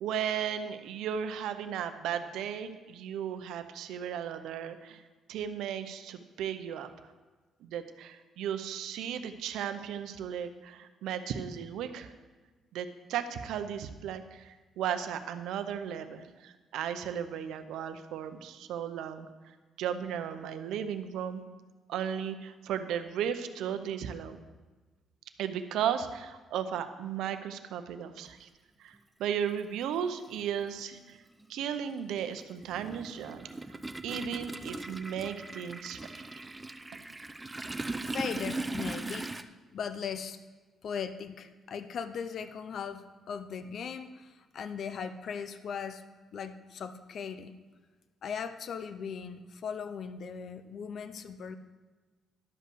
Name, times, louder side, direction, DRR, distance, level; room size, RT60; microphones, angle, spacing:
voice 1, 0.0-5.0 5.3-7.1 7.6-12.1 12.7-21.4 21.9-24.4 25.4-28.5 28.8-31.2 31.5-33.5 34.0-36.4, right 8 dB, 85° right, 9 dB, 0.7 m, -35 dB
Toilet flush, 28.9-29.0 30.3-30.5 30.8-39.4, right 2 dB, 15° right, 0.6 m, -39 dB
voice 2, 38.0-39.3 39.7-40.4 40.8-46.0 46.3-47.6 48.2-51.6, left 6 dB, 60° left, 11 dB, 0.6 m, -38 dB
11.5 x 5.6 x 6.2 m, 1.3 s
cardioid pair, 90°, 0 cm